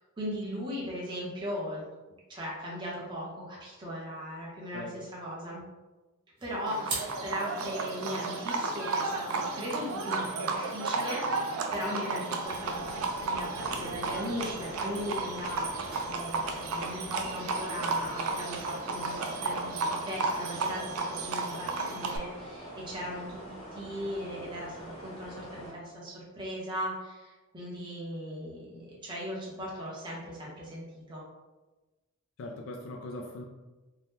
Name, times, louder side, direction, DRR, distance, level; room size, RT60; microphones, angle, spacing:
voice 1, 0.2-1.8 2.3-5.6 6.4-24.8 25.0-31.2, equal, 20° right, -6 dB, 0.7 m, -38 dB
sound 1, 6.4-19.2, right 3 dB, 55° right, 1.0 m, -48 dB
Livestock farm animals working animals, 6.7-22.2, right 3 dB, 85° right, 0.4 m, -33 dB
sound 2, 12.4-25.7, equal, 25° left, 0.8 m, -45 dB
voice 2, 32.4-33.4, left 2 dB, 65° left, 1 dB, 0.4 m, -40 dB
2.7 x 2.1 x 3.5 m, 1.1 s
head